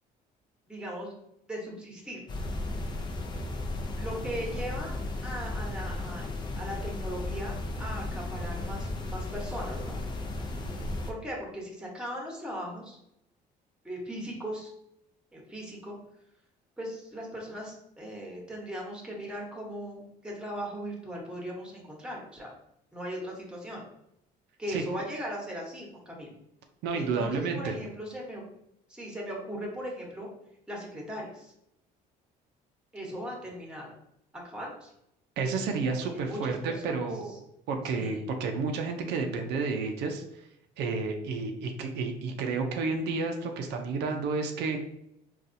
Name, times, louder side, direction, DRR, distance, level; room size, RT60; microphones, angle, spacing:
voice 1, 0.7-1.1 1.5-2.2 3.9-4.9 5.2-6.3 6.6-10.0 11.1-13.0 13.8-14.7 15.3-15.9 16.8-22.5 22.9-23.8 24.6-26.3 26.9-28.4 28.9-30.3 30.7-31.5 32.9-33.9 34.4-34.9 36.1-36.9 37.8-38.1, equal, 5° right, -1 dB, 1.0 m, -38 dB
sound 1, 2.3-11.1, left 2 dB, 25° left, 0.5 m, -35 dB
voice 2, 26.8-27.8 35.4-37.4 37.7-40.4 40.8-44.8, right 4 dB, 85° right, 4 dB, 0.5 m, -31 dB
4.0 x 2.3 x 2.6 m, 0.80 s
cardioid pair, 110°, 17 cm